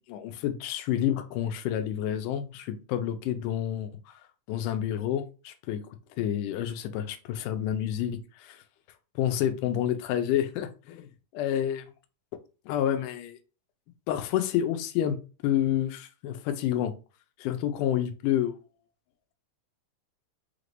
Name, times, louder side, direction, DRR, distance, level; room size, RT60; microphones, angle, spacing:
voice 1, 0.1-4.1 4.5-5.8 6.2-8.6 9.2-11.8 12.7-13.4 14.1-15.2 15.4-16.9 17.4-18.6, left 10 dB, 80° left, 2.1 m, -29 dB
5.0 x 3.3 x 2.5 m
omnidirectional pair, 3.8 m